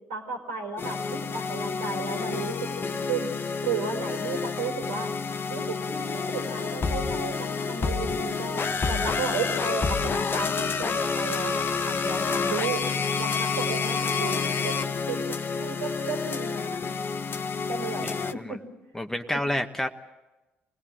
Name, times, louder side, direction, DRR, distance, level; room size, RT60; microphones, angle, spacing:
voice 1, 0.1-3.3 3.6-5.1 5.5-12.8 13.2-16.8 17.7-18.6, right 4 dB, 85° right, 1 dB, 4.2 m, -34 dB
sound 1, 0.8-18.3, left 5 dB, 40° left, 1.0 m, -29 dB
voice 2, 18.0-18.6 18.9-19.9, left 1 dB, 10° left, 5 dB, 1.1 m, -29 dB
25.0 x 19.0 x 7.6 m, 1.1 s
hypercardioid pair, 50°, 6 cm